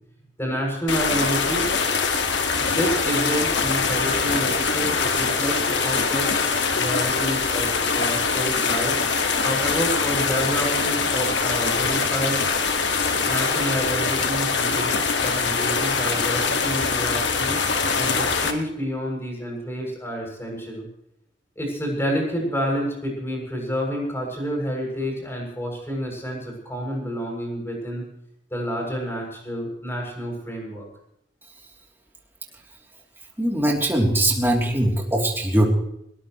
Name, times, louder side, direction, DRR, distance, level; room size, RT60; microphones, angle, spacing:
voice 1, 0.4-1.7 2.6-6.3 6.7-7.7 7.9-8.9 9.4-12.4 13.3-15.0 15.2-17.6 18.0-20.8 21.6-28.0 28.5-30.9, equal, 15° left, 0 dB, 7.2 m, -29 dB
sound 1, 0.9-18.5, left 5 dB, 70° left, 2.0 m, -23 dB
voice 2, 33.4-35.7, right 1 dB, 10° right, -1 dB, 3.2 m, -21 dB
21.5 x 19.5 x 3.2 m, 0.75 s
head